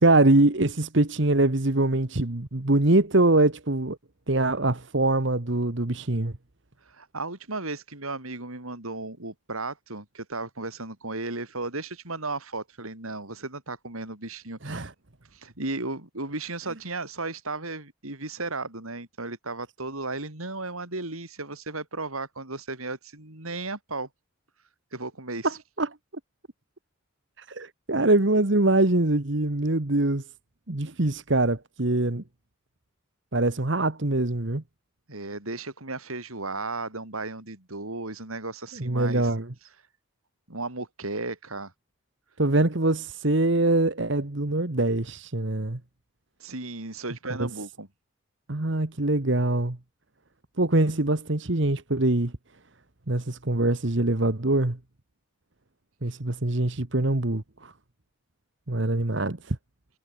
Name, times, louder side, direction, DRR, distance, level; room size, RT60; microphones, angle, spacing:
voice 1, 0.0-4.0 4.3-6.3 14.6-14.9 25.4-25.9 27.4-30.2 30.7-32.2 33.3-34.6 38.7-39.5 42.4-45.8 47.4-47.5 48.5-49.8 50.6-52.3 53.1-54.8 56.0-57.7 58.7-59.6, right 2 dB, 55° right, 1.5 m, -23 dB
voice 2, 6.9-14.9 15.3-24.1 24.9-25.5 35.1-39.3 40.5-41.7 46.4-47.9, right 3 dB, 85° right, 4.9 m, -35 dB
head